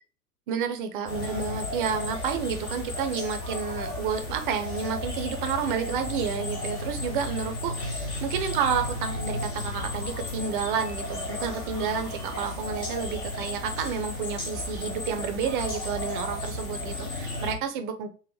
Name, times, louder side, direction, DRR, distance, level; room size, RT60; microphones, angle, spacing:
voice 1, 0.5-18.1, right 7 dB, 35° right, 7 dB, 0.5 m, -30 dB
sound 1, 1.1-17.5, left 2 dB, 15° left, 0.3 m, -34 dB
3.9 x 2.1 x 3.0 m, 0.38 s
figure-of-eight pair, 110°, 47 cm